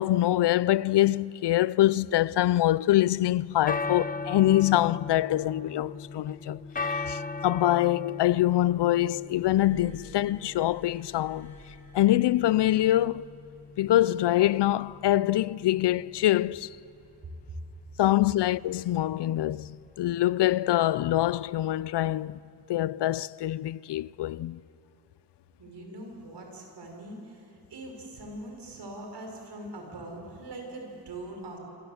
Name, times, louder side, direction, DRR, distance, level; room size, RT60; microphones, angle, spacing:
voice 1, 0.0-11.5 11.9-13.2 13.8-16.7 18.0-22.4 22.7-24.6, left 14 dB, 90° left, 0.5 m, -24 dB
sound 1, 3.3-22.4, left 4 dB, 20° left, 0.9 m, -39 dB
Glass, 9.2-12.8 13.8-14.0, equal, 5° left, 7.8 m, -52 dB
voice 2, 25.6-31.6, right 1 dB, 75° right, 5.7 m, -42 dB
27.0 x 26.5 x 8.0 m
wide cardioid pair, 110°, 40 cm